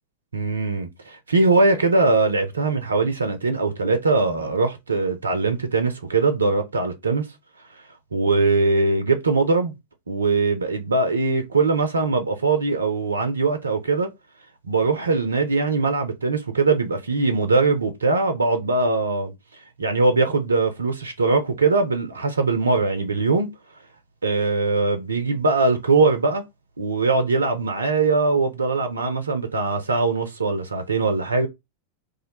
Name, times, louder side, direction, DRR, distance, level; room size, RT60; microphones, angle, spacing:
voice 1, 0.3-7.3 8.1-9.7 10.1-14.1 14.7-19.3 19.8-23.5 24.2-26.4 26.8-31.5, right 3 dB, 75° right, 0.4 m, -21 dB
2.4 x 2.1 x 2.7 m
figure-of-eight pair, 90°, 0 cm